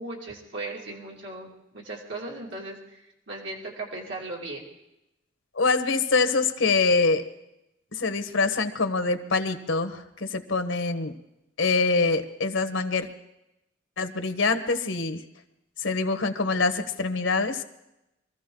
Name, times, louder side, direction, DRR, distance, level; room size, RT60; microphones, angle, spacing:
voice 1, 0.0-3.0 3.3-4.6, right 2 dB, 75° right, -2 dB, 2.6 m, -37 dB
voice 2, 5.6-7.2 8.0-11.1 11.6-13.1 14.0-15.2 15.8-17.6, left 3 dB, 80° left, 9 dB, 1.3 m, -25 dB
24.5 x 14.5 x 3.9 m, 0.88 s
head